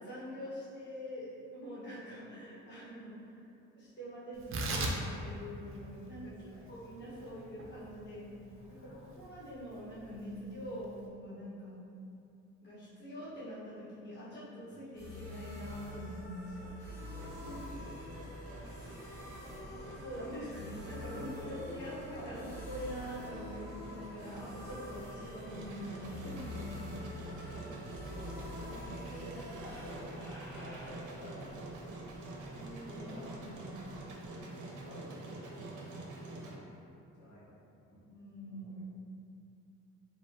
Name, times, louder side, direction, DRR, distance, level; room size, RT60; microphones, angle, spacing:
voice 1, 0.0-3.3 3.7-8.3 8.7-11.8 12.6-16.7 19.6-27.0 32.5-33.6 37.9-38.9, equal, 35° left, -10 dB, 1.1 m, -45 dB
Tearing, 4.3-11.1, right 2 dB, 45° right, 0.4 m, -41 dB
voice 2, 7.0-7.5 8.5-9.2 16.5-19.0 19.5-19.8 20.7-23.0 24.1-24.5 26.7-32.4 32.8-33.7 34.4-36.0 36.3-36.6 37.2-37.5 37.8-38.0 38.5-38.8, equal, 80° left, -9 dB, 1.2 m, -51 dB
sound 1, 14.9-34.4, left 2 dB, 10° left, 1.1 m, -47 dB
Engine, 17.2-36.5, right 2 dB, 85° right, 0.7 m, -47 dB
4.5 x 2.6 x 2.6 m, 2.7 s
cardioid pair, 145°, 30 cm